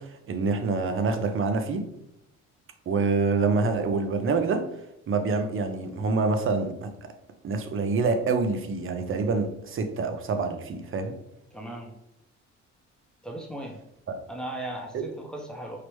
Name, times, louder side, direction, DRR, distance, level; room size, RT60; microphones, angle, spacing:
voice 1, 0.0-1.9 2.9-4.7 5.1-7.1 7.4-11.2 14.9-15.0, right 4 dB, 45° right, 6 dB, 0.6 m, -26 dB
voice 2, 11.5-11.9 13.2-13.8 14.3-15.8, right 1 dB, 5° left, 1 dB, 0.6 m, -37 dB
4.8 x 2.1 x 3.0 m, 0.79 s
cardioid pair, 90°, 30 cm